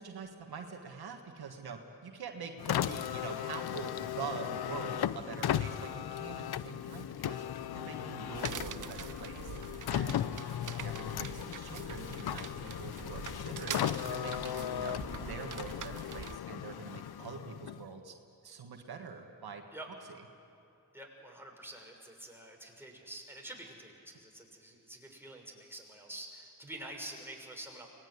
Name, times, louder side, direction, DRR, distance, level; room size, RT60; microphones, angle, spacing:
voice 1, 0.0-7.4 7.7-9.5 9.9-13.8 14.1-18.1 18.4-19.6, right 5 dB, 85° right, 4 dB, 1.6 m, -45 dB
Car, 2.6-18.0, left 10 dB, 90° left, 0.6 m, -37 dB
sound 1, 8.3-16.4, right 8 dB, 55° right, 0.7 m, -44 dB
voice 2, 20.9-27.9, right 1 dB, 5° right, 0 dB, 6.3 m, -47 dB
24.0 x 19.5 x 9.6 m, 2.7 s
cardioid pair, 45°, 37 cm